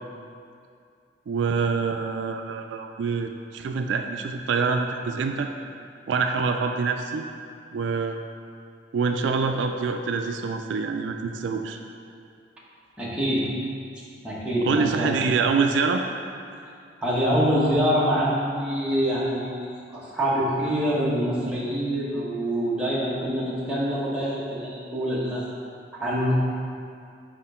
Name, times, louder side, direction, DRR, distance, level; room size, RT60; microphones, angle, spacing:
voice 1, 1.3-5.5 6.1-7.3 7.7-8.2 8.9-11.8 14.6-16.0, right 5 dB, 75° right, 5 dB, 0.3 m, -25 dB
voice 2, 13.0-13.5 14.2-15.2 17.0-25.5 25.9-26.4, equal, 5° right, -8 dB, 1.1 m, -25 dB
5.8 x 4.4 x 4.3 m, 2.4 s
head